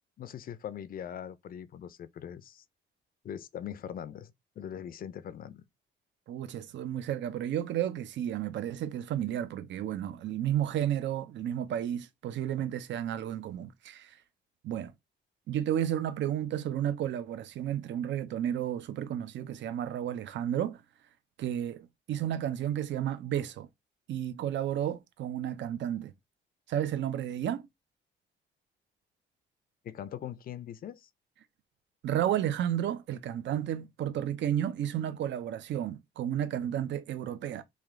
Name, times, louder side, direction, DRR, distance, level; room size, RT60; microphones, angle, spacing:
voice 1, 0.2-2.6 3.2-5.6 29.8-31.1, left 9 dB, 45° left, 0.5 m, -41 dB
voice 2, 6.3-14.2 14.6-14.9 15.5-20.8 21.4-23.7 24.1-26.1 26.7-27.7 32.0-37.6, right 10 dB, 65° right, 0.6 m, -32 dB
3.4 x 2.4 x 3.6 m
cardioid pair, 90°, 20 cm